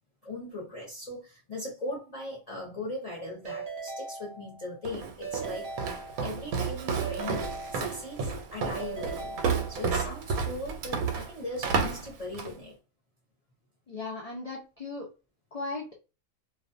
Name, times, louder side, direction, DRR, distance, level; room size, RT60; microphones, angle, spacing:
voice 1, 0.2-5.9 6.2-7.4 7.7-9.4 9.7-12.8, left 2 dB, 35° left, 0.7 m, -39 dB
Keyboard (musical) / Ringtone, 3.5-4.8 5.2-6.5 7.0-8.3 8.8-10.1, right 4 dB, 55° right, 0.7 m, -40 dB
Walk footsteps, 4.8-12.6, right 5 dB, 80° right, 1.1 m, -31 dB
voice 2, 13.9-15.1 15.5-16.0, left 3 dB, 70° left, 0.3 m, -37 dB
2.5 x 2.2 x 2.5 m
omnidirectional pair, 1.5 m